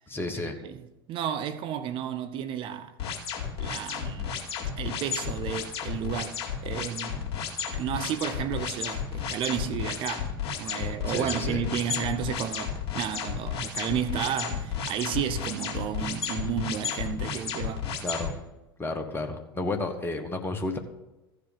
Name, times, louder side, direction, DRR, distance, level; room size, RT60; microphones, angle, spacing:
voice 1, 0.1-0.6 10.8-11.6 18.0-18.3 18.8-20.8, left 2 dB, 15° left, 1.4 m, -32 dB
voice 2, 1.1-3.0 3.6-4.3 4.8-7.3 7.7-10.3 10.6-17.9, right 9 dB, 40° right, 0.7 m, -32 dB
sound 1, 3.0-18.3, left 7 dB, 45° left, 2.5 m, -32 dB
14.5 x 5.0 x 6.6 m
figure-of-eight pair, 80°, 13 cm